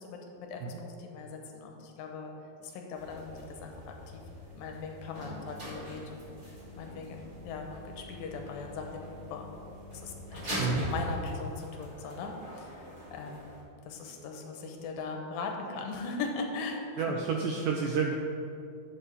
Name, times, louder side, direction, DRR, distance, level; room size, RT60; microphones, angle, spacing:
voice 1, 0.0-2.3 2.6-3.9 4.5-6.3 6.8-8.9 9.3-9.5 10.0-10.6 10.9-12.7 13.1-13.4 13.9-17.1, left 4 dB, 75° left, 2 dB, 2.4 m, -39 dB
sound 1, 3.0-13.6, equal, 50° right, 0.8 m, -42 dB
voice 2, 17.0-18.2, right 5 dB, 85° right, 2 dB, 1.9 m, -30 dB
11.0 x 7.7 x 3.3 m, 2.7 s
omnidirectional pair, 4.3 m